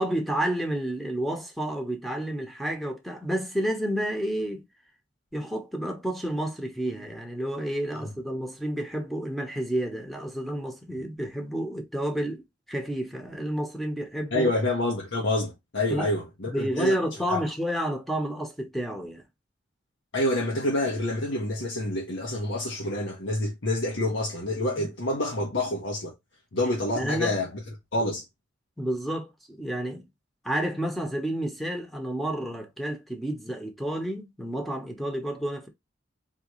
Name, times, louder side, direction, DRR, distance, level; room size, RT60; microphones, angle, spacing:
voice 1, 0.0-4.7 5.3-12.4 12.7-14.5 15.9-16.1 16.4-19.2 24.8-24.9 27.0-27.4 28.8-30.1 30.4-35.7, right 1 dB, ahead, 1.0 m, -30 dB
voice 2, 14.3-16.9 17.3-17.4 20.1-26.1 26.5-27.5 27.9-28.2, left 1 dB, 75° left, 1.3 m, -27 dB
4.1 x 3.1 x 3.1 m
head